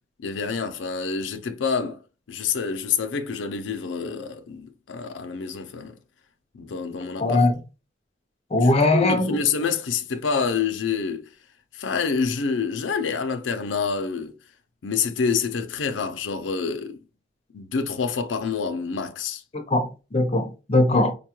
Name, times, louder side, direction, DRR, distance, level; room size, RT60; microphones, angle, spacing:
voice 1, 0.2-2.0 2.3-6.0 6.5-7.4 8.6-11.3 11.7-14.3 14.8-17.0 17.5-19.4, left 5 dB, 85° left, 0.5 m, -27 dB
voice 2, 7.2-7.5 8.5-9.4 19.5-21.1, left 2 dB, 35° left, 0.6 m, -20 dB
5.1 x 2.3 x 2.9 m
head